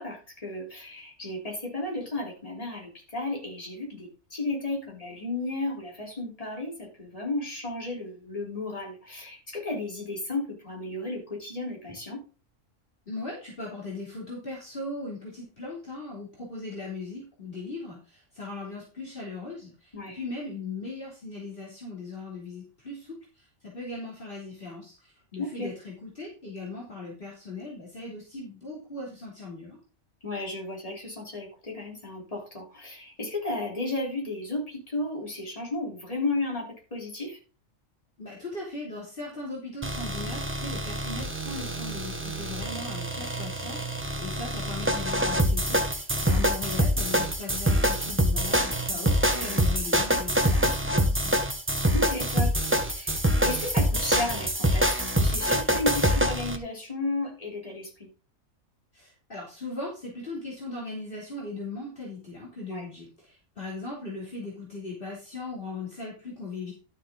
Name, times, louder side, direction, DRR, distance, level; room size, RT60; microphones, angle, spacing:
voice 1, 0.0-12.2 19.9-20.2 25.3-25.7 30.2-37.4 46.2-46.5 48.9-49.2 51.9-58.1 62.7-62.9, left 2 dB, 25° left, -1 dB, 3.8 m, -34 dB
voice 2, 13.1-29.8 38.2-51.3 58.9-66.7, left 2 dB, 45° left, -4 dB, 3.2 m, -39 dB
sound 1, 39.8-56.6, equal, 10° right, 1.0 m, -25 dB
12.0 x 7.0 x 3.8 m, 0.34 s
omnidirectional pair, 1.3 m